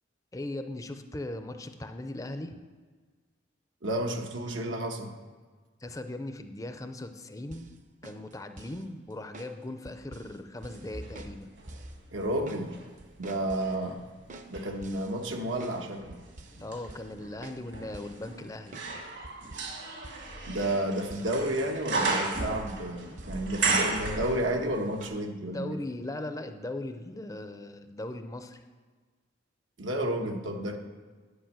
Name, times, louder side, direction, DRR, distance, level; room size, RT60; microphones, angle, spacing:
voice 1, 0.3-2.6 5.8-7.7 8.0-11.5 16.6-18.8 25.4-28.6, left 1 dB, 20° left, 8 dB, 0.5 m, -39 dB
voice 2, 3.8-5.1 12.1-12.7 13.2-14.0 14.5-16.2 20.5-25.8 29.8-30.8, right 1 dB, 85° right, 3 dB, 1.2 m, -31 dB
sound 1, 7.5-7.7 8.0-8.8 9.3-9.5 9.9-10.4 10.6-10.9 11.2-11.4 11.7-11.9 12.2-12.7 13.0-13.8 14.3-15.8 16.1-16.6 16.9-17.1 17.4-17.6 17.9-18.2 18.7-18.9 19.2-19.8 20.0-20.3 20.6-21.7 21.9-22.1 22.4-22.9 23.2-23.4 23.7-23.9 24.2-24.5 25.0-25.2, right 2 dB, 40° right, 0.7 m, -48 dB
sound 2, 10.7-12.9 13.4-24.8 25.0-25.1, right 3 dB, 70° right, 1.8 m, -35 dB
10.5 x 5.3 x 7.6 m, 1.4 s
head